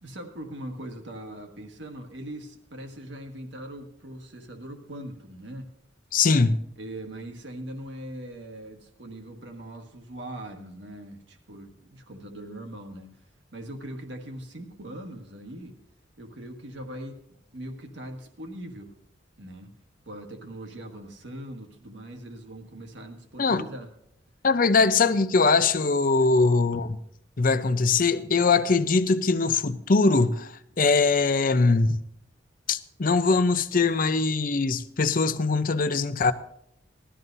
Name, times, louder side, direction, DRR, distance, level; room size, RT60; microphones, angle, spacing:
voice 1, 0.0-5.7 6.8-13.2 13.5-15.8 16.2-18.9 19.4-19.7 20.0-23.9 26.2-26.7 30.7-30.8, right 1 dB, 65° right, 1.6 m, -41 dB
voice 2, 6.1-6.6 23.4-23.7 24.4-27.0 27.4-32.0 32.7-36.3, left 4 dB, 45° left, 0.6 m, -22 dB
18.5 x 12.5 x 2.7 m
head